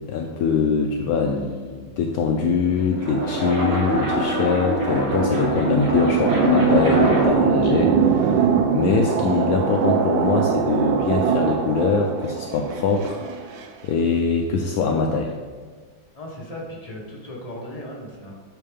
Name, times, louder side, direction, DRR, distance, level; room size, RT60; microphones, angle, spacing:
voice 1, 0.0-8.4 8.7-13.2 13.8-15.3, left 5 dB, 80° left, 2 dB, 0.8 m, -23 dB
sound 1, 2.6-7.5, equal, 45° right, 0.8 m, -23 dB
sound 2, 5.3-13.7, right 7 dB, 80° right, 1.3 m, -22 dB
voice 2, 16.1-18.4, left 1 dB, 25° left, -3 dB, 0.8 m, -36 dB
8.4 x 3.8 x 3.4 m, 1.5 s
omnidirectional pair, 2.1 m